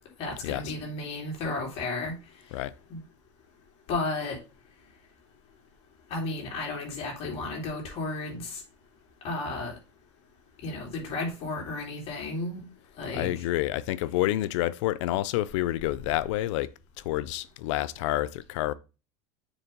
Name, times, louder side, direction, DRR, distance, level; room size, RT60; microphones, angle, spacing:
voice 1, 0.2-2.1 2.9-3.0 3.9-4.4 6.1-8.6 9.2-9.7 10.6-12.6 13.0-13.4, left 2 dB, 45° left, 3.0 m, -33 dB
voice 2, 13.1-16.7 17.0-18.7, left 15 dB, 80° left, 0.5 m, -28 dB
7.1 x 3.6 x 5.2 m
supercardioid pair, 140°, 15 cm